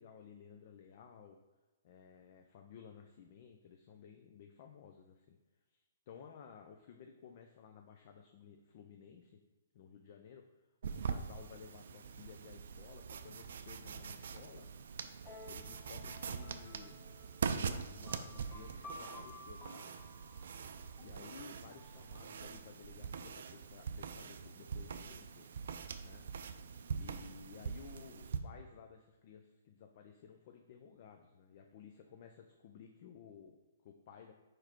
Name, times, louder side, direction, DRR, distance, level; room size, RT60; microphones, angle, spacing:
voice 1, 0.0-1.4 1.8-5.4 5.7-9.4 9.7-10.4 10.9-14.7 15.4-16.9 17.5-19.9 21.0-25.5 26.0-26.2 27.0-34.3, left 7 dB, 45° left, 4 dB, 0.5 m, -56 dB
sound 1, 10.8-28.4, right 6 dB, 65° right, 0.4 m, -43 dB
sound 2, 15.2-22.8, left 3 dB, 20° left, 1.0 m, -56 dB
4.8 x 4.6 x 4.4 m, 1.2 s
hypercardioid pair, 130°, 0 cm